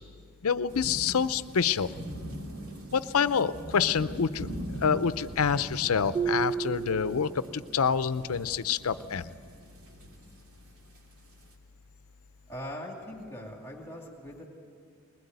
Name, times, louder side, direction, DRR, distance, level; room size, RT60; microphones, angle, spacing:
voice 1, 0.4-1.9 2.9-4.5 4.8-9.3, left 6 dB, 85° left, 14 dB, 0.6 m, -27 dB
sound 1, 0.7-11.5, equal, 85° right, 3.0 m, -42 dB
sound 2, 6.1-7.8, right 6 dB, 20° right, 0.5 m, -32 dB
voice 2, 12.5-14.5, equal, 10° left, -1 dB, 2.5 m, -41 dB
21.0 x 20.0 x 9.3 m, 2.1 s
head